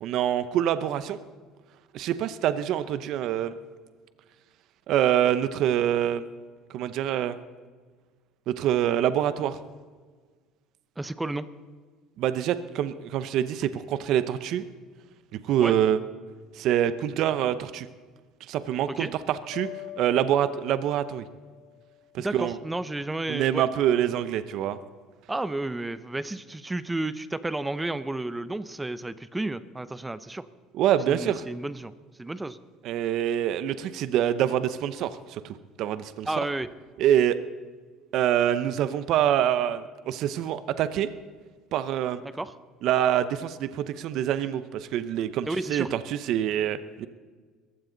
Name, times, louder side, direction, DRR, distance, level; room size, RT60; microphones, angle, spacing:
voice 1, 0.0-1.2 1.9-3.5 4.9-6.2 6.7-7.4 8.5-9.6 12.2-14.6 15.4-16.0 16.5-17.9 18.5-19.7 20.0-21.2 22.1-22.5 23.3-24.8 30.7-31.4 32.8-36.3 37.0-37.4 38.1-41.1 41.7-42.2 42.8-47.1, right 10 dB, 60° right, 12 dB, 0.8 m, -25 dB
voice 2, 11.0-11.5 15.6-15.8 18.9-19.1 22.2-23.6 25.3-30.5 31.1-31.9 32.2-32.6 36.3-36.7 42.2-42.5 45.5-45.9, right 2 dB, 10° right, 14 dB, 0.6 m, -32 dB
sound 1, 19.5-22.6, left 14 dB, 80° left, 1.3 m, -44 dB
21.5 x 15.5 x 4.0 m, 1.5 s
cardioid pair, 130°, 0 cm